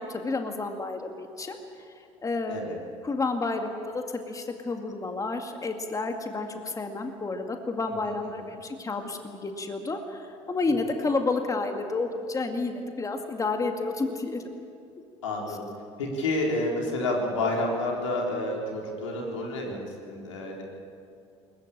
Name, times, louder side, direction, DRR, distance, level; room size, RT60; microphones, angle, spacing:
voice 1, 0.0-1.6 1.9-2.0 2.2-2.6 3.0-14.4 15.5-15.6, left 3 dB, 20° left, 5 dB, 2.2 m, -30 dB
voice 2, 15.2-15.7 16.0-20.6, left 2 dB, 85° left, -1 dB, 4.1 m, -29 dB
21.5 x 20.5 x 9.0 m, 2.5 s
hypercardioid pair, 70°, 16 cm